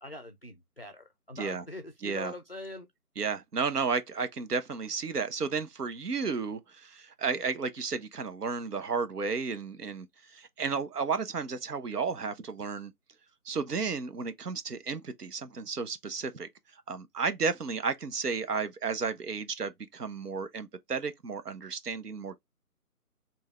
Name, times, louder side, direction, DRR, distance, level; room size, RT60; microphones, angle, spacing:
voice 1, 0.0-2.9, left 2 dB, 40° left, 0.4 m, -43 dB
voice 2, 2.0-2.3 3.2-12.9 13.4-16.5 16.9-22.4, right 5 dB, 80° right, 1.0 m, -33 dB
4.7 x 2.8 x 2.3 m
figure-of-eight pair, 160°, 47 cm